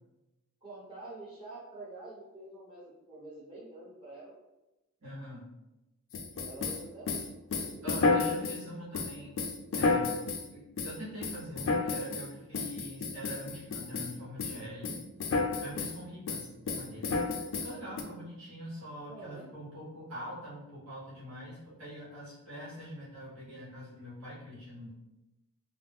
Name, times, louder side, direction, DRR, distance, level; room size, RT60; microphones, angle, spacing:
voice 1, 0.6-4.3 6.3-7.9 19.0-19.5, right 2 dB, 20° right, -10 dB, 1.2 m, -47 dB
voice 2, 5.0-5.5 7.8-9.4 9.7-10.1 10.5-15.0 15.6-17.2 17.6-24.9, equal, 65° right, -8 dB, 1.0 m, -44 dB
sound 1, 6.1-8.6 8.9-10.4 10.8-10.9 11.2-12.3 12.5-14.1 14.4-14.6 14.8-16.0 16.3-18.0, left 3 dB, 65° left, 0.3 m, -31 dB
2.5 x 2.0 x 3.4 m, 0.99 s
head